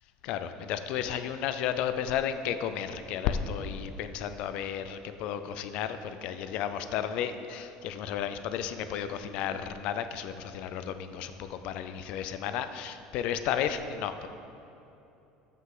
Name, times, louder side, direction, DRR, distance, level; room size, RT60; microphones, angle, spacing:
voice 1, 0.2-14.3, left 9 dB, 50° left, 10 dB, 0.5 m, -33 dB
13.5 x 5.7 x 3.8 m, 2.9 s
cardioid pair, 170°, 2 cm